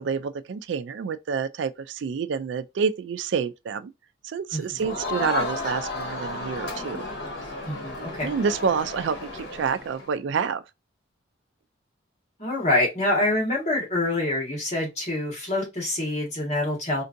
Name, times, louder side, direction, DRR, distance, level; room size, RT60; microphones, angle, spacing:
voice 1, 0.0-3.9 4.2-7.1 8.0-10.6, right 6 dB, 65° right, 0.3 m, -28 dB
Crowd, 4.8-10.1, left 2 dB, 60° left, 1.1 m, -33 dB
voice 2, 7.7-8.3 12.4-17.0, left 1 dB, 35° left, 1.5 m, -26 dB
4.4 x 2.6 x 2.6 m
head